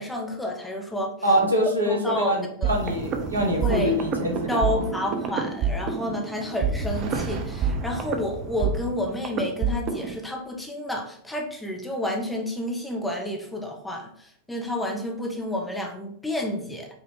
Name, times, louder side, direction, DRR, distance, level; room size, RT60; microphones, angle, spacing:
voice 1, 0.0-1.4 1.8-2.8 3.6-3.9 4.5-16.9, left 1 dB, 5° left, 1 dB, 0.8 m, -30 dB
voice 2, 1.2-2.0 2.2-4.6, equal, 80° right, -1 dB, 1.2 m, -24 dB
sound 1, 2.6-10.2, right 5 dB, 35° right, 0.6 m, -28 dB
5.0 x 2.8 x 3.6 m, 0.64 s
figure-of-eight pair, 90°, 0 cm